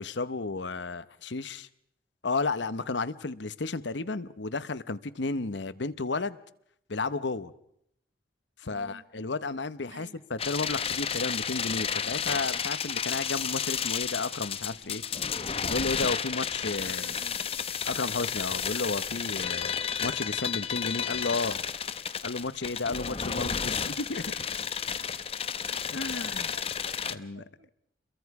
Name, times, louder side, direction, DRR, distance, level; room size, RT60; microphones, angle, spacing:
voice 1, 0.0-1.7 2.2-6.4 6.9-7.5 8.6-15.0 15.6-17.0 17.8-19.7 20.0-21.6 22.2-24.3 25.9-26.5 27.1-27.4, left 3 dB, 75° left, 14 dB, 1.0 m, -33 dB
voice 2, 8.6-9.0 9.9-10.2 16.8-17.6 25.1-25.3 26.0-27.7, right 3 dB, 90° right, 8 dB, 1.8 m, -51 dB
sound 1, 10.4-27.1, left 7 dB, 30° left, 0.8 m, -32 dB
30.0 x 22.5 x 4.8 m, 0.74 s
head